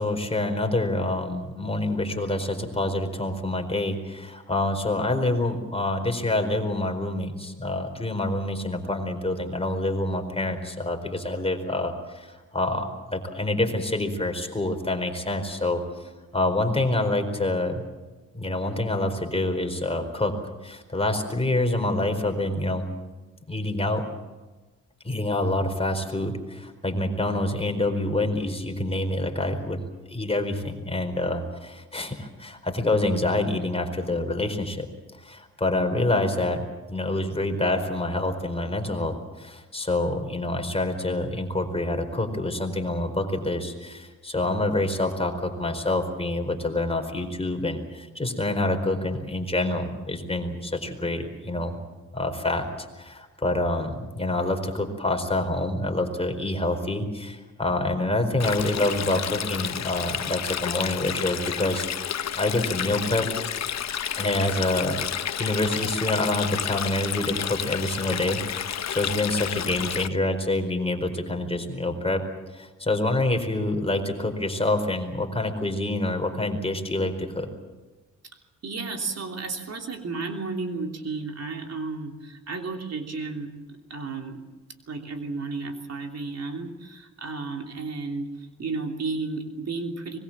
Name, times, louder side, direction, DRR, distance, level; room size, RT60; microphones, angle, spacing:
voice 1, 0.0-15.8 16.3-17.8 18.3-20.4 20.6-22.8 23.5-24.0 25.0-29.8 30.1-34.9 35.2-36.6 36.9-51.8 52.1-52.7 53.0-61.9 62.3-63.3 64.2-72.2 72.5-77.5, left 2 dB, 20° left, 5 dB, 4.6 m, -27 dB
Stream, 58.4-70.1, left 9 dB, 60° left, 1.0 m, -31 dB
voice 2, 78.3-84.4 84.9-90.2, right 3 dB, 55° right, 3 dB, 3.2 m, -33 dB
25.0 x 21.0 x 7.5 m, 1.2 s
cardioid pair, 65°, 31 cm